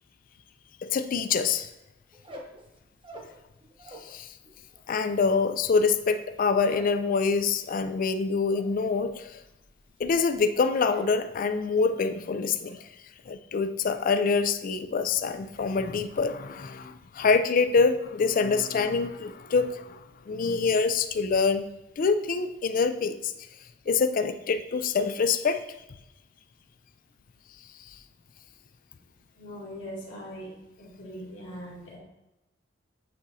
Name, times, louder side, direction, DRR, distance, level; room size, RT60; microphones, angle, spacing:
voice 1, 0.8-1.7 4.0-4.3 4.9-9.4 10.0-12.8 13.3-20.0 20.3-21.6 22.0-23.3 23.9-25.6, left 4 dB, 45° left, 10 dB, 0.4 m, -25 dB
sound 1, 2.1-4.2 4.4-11.2 11.5-12.0 12.3-12.8, equal, 30° right, 0.9 m, -47 dB
voice 2, 29.4-30.5 30.8-32.0, equal, 75° left, -5 dB, 2.2 m, -41 dB
8.4 x 4.1 x 2.7 m, 0.94 s
head